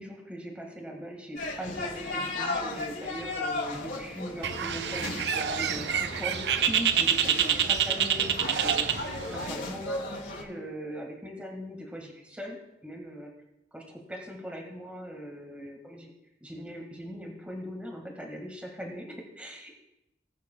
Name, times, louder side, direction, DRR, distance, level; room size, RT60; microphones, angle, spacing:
voice 1, 0.0-8.9 9.3-12.6 12.8-13.3 13.7-16.1 16.4-19.9, equal, 5° right, 0 dB, 1.7 m, -40 dB
sound 1, 1.3-10.4, left 2 dB, 65° left, 3.8 m, -36 dB
Bird, 4.4-9.5, right 8 dB, 65° right, 0.5 m, -27 dB
20.0 x 8.3 x 2.2 m, 0.86 s
head